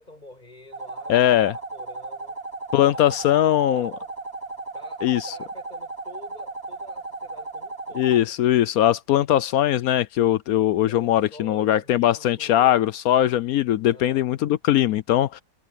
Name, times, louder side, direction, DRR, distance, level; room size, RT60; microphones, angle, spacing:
voice 1, 0.0-2.4 2.9-4.1 4.7-8.3 10.9-12.9 13.9-14.3, left 1 dB, 25° left, 7.3 m, -48 dB
sound 1, 0.7-8.2, right 2 dB, 65° right, 7.0 m, -35 dB
voice 2, 1.1-1.5 2.7-3.9 5.0-5.3 7.9-15.4, left 12 dB, 70° left, 1.0 m, -20 dB
omnidirectional pair, 1.7 m